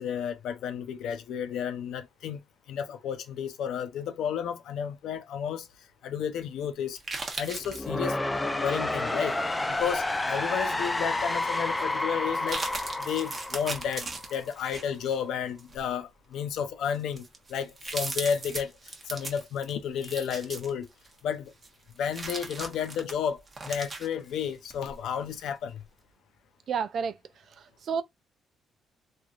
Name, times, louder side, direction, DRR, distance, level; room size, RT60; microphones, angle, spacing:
voice 1, 0.0-2.4 2.7-5.7 6.0-7.0 7.4-8.2 8.6-9.4 9.7-12.6 13.0-20.9 21.2-21.5 22.0-25.8, left 8 dB, 80° left, 0.6 m, -32 dB
sound 1, 6.9-7.9 9.2-10.1 10.6-10.7 11.7-11.8 12.3-15.2 15.6-15.8 16.5-16.6 16.9-21.2 21.6-24.9 25.3-25.4, right 3 dB, 35° right, 1.0 m, -38 dB
sound 2, 7.6-14.6, left 2 dB, 15° left, 0.5 m, -30 dB
voice 2, 26.7-27.2 27.8-28.0, right 6 dB, 60° right, 0.4 m, -29 dB
3.1 x 2.6 x 2.4 m
cardioid pair, 90°, 0 cm